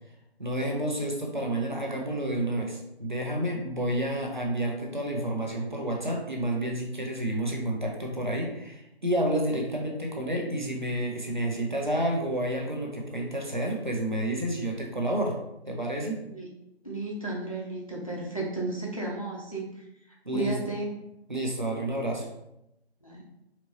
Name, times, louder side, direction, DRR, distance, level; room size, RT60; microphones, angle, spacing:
voice 1, 0.4-15.4 15.7-16.2 20.2-20.5 21.3-22.3, right 1 dB, 45° right, 0 dB, 0.8 m, -30 dB
voice 2, 16.8-19.7 20.3-20.9 23.0-23.2, right 2 dB, 30° left, -3 dB, 0.6 m, -33 dB
4.2 x 2.9 x 2.9 m, 0.85 s
figure-of-eight pair, 180°, 33 cm